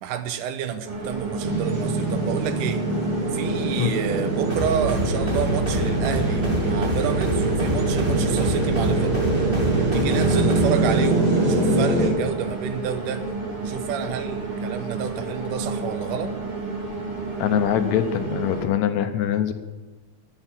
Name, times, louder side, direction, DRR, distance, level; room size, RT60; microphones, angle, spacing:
voice 1, 0.0-2.9 3.3-9.4 9.9-13.2 13.6-16.3, right 9 dB, 85° right, 10 dB, 2.4 m, -30 dB
sound 1, 0.8-18.7, right 3 dB, 70° right, 5.5 m, -31 dB
sound 2, 1.4-12.1, right 2 dB, 45° right, 2.5 m, -24 dB
sound 3, 4.5-10.7, left 1 dB, 20° right, 1.9 m, -27 dB
voice 2, 17.4-19.5, left 10 dB, 75° left, 8 dB, 1.9 m, -23 dB
11.5 x 8.9 x 6.0 m, 1.3 s
omnidirectional pair, 3.6 m